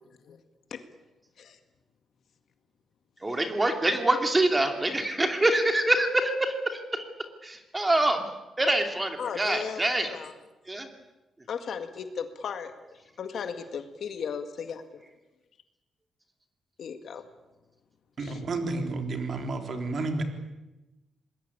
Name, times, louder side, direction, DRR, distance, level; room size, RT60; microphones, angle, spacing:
voice 1, 3.2-7.0 7.4-8.2 8.6-10.1 10.7-10.9, right 1 dB, 15° right, 5 dB, 2.7 m, -25 dB
voice 2, 9.2-10.3 11.5-12.7 13.2-15.0 16.8-17.2 18.2-18.4, left 6 dB, 65° left, 8 dB, 1.9 m, -36 dB
voice 3, 18.2-20.2, right 3 dB, 45° right, 5 dB, 3.7 m, -31 dB
26.0 x 20.5 x 8.7 m, 1.1 s
cardioid pair, 125°, 0 cm